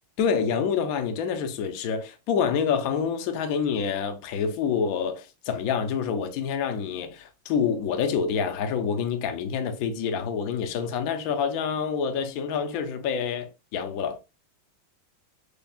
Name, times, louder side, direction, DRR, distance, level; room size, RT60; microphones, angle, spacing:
voice 1, 0.2-14.2, left 6 dB, 65° left, 1.0 m, -27 dB
6.7 x 2.3 x 2.3 m
omnidirectional pair, 2.0 m